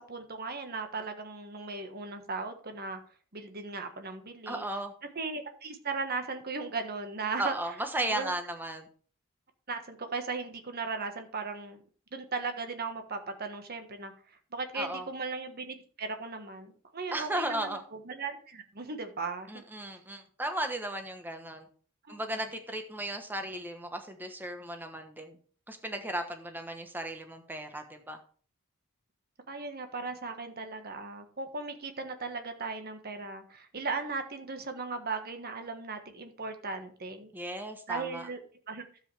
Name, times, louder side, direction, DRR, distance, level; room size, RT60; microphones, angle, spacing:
voice 1, 0.0-3.0 3.3-4.6 5.1-7.5 8.1-8.3 9.7-11.8 12.1-14.1 14.5-19.5 22.1-22.2 29.5-37.3 37.9-38.4 38.7-38.8, right 4 dB, 45° right, 7 dB, 1.4 m, -37 dB
voice 2, 4.5-4.9 7.4-8.9 14.7-15.1 17.1-17.8 19.5-21.7 22.1-25.4 25.7-28.2 37.3-38.3, right 1 dB, 10° right, 5 dB, 1.2 m, -35 dB
12.0 x 7.9 x 3.4 m, 0.43 s
head